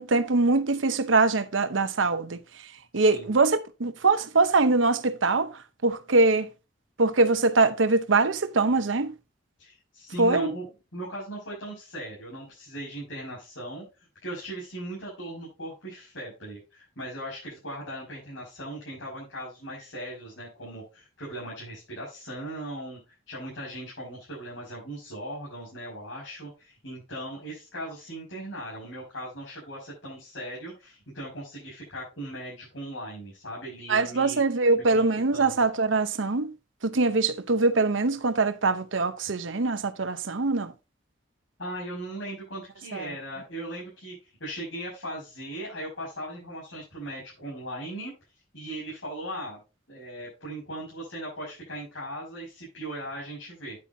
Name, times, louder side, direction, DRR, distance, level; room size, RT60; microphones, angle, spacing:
voice 1, 0.0-2.4 2.9-5.5 5.8-6.5 7.0-9.1 10.2-10.5 33.9-36.5 36.8-40.7 42.9-43.1, right 3 dB, 85° right, 0.9 m, -23 dB
voice 2, 2.9-3.3 9.6-13.9 14.2-23.0 23.3-34.4 34.9-35.0 35.3-35.6 41.6-44.1 44.4-48.1 48.5-49.6 49.9-53.8, right 1 dB, 85° left, 6.1 m, -38 dB
9.9 x 8.6 x 2.8 m
head